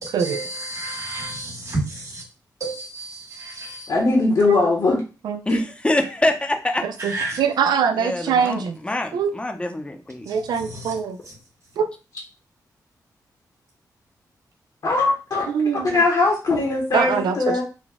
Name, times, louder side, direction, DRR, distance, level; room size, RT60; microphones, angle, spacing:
voice 1, 0.0-2.2 2.6-3.9 7.0-7.4 10.3-10.9, right 2 dB, 50° right, -2 dB, 1.8 m, -31 dB
voice 2, 3.9-5.0 5.5-5.6 14.8-15.5 15.9-17.6, left 3 dB, 60° left, -1 dB, 1.0 m, -20 dB
voice 3, 5.5-6.9 8.0-10.3, left 1 dB, 15° left, 6 dB, 0.6 m, -25 dB
voice 4, 6.8-8.8 9.1-9.3 10.3-11.2 11.8-11.9 15.5-16.0 16.9-17.6, right 6 dB, 85° right, 8 dB, 0.3 m, -23 dB
4.0 x 2.2 x 3.5 m, 0.32 s
cardioid pair, 85°, 7 cm